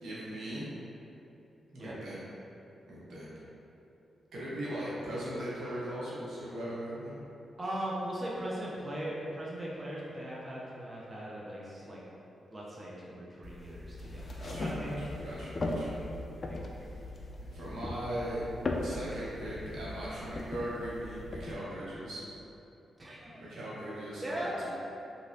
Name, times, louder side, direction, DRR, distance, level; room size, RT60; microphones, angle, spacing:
voice 1, 0.0-0.6 1.7-2.2 2.9-3.3 4.3-7.2 14.3-15.9 17.5-18.4 18.8-22.2 23.2-24.7, right 1 dB, 80° right, -8 dB, 0.8 m, -39 dB
voice 2, 7.6-12.0 12.5-15.0 23.0-23.4 24.2-24.6, right 1 dB, 30° right, -5 dB, 0.5 m, -39 dB
sound 1, 13.4-21.5, left 2 dB, 45° left, 0.3 m, -38 dB
3.1 x 2.6 x 2.6 m, 2.8 s
cardioid pair, 60°, 0 cm